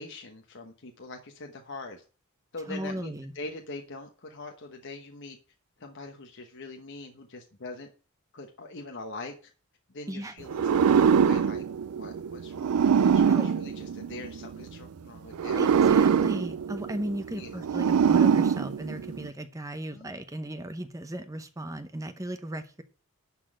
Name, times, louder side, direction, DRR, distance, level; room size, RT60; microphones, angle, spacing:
voice 1, 0.0-2.0 2.5-5.4 5.8-7.9 8.3-9.5 9.9-11.6 12.0-15.6 15.9-16.1 17.3-17.6 19.9-20.1, left 3 dB, 55° left, 4 dB, 1.1 m, -43 dB
voice 2, 2.7-3.3 10.1-10.4 13.3-13.5 15.6-22.8, right 1 dB, 15° right, 9 dB, 0.7 m, -36 dB
sound 1, 10.5-14.6 15.3-19.3, right 7 dB, 85° right, 0.4 m, -23 dB
11.5 x 4.1 x 7.5 m, 0.39 s
head